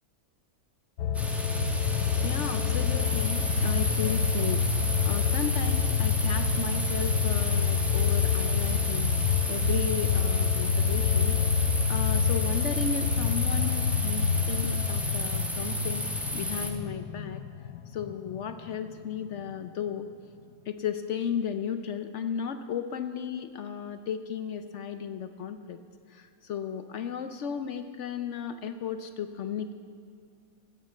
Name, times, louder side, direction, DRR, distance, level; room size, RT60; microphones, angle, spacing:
sound 1, 1.0-18.5 18.9-19.0, left 7 dB, 90° left, 1.2 m, -27 dB
sound 2, 1.1-16.7, equal, ahead, 1.1 m, -33 dB
voice 1, 2.2-4.6 5.0-9.1 9.5-16.0 16.3-17.4 17.9-20.1 20.7-25.8 26.1-29.7, left 7 dB, 65° left, 9 dB, 0.8 m, -34 dB
15.0 x 9.0 x 7.4 m, 2.2 s
omnidirectional pair, 1.6 m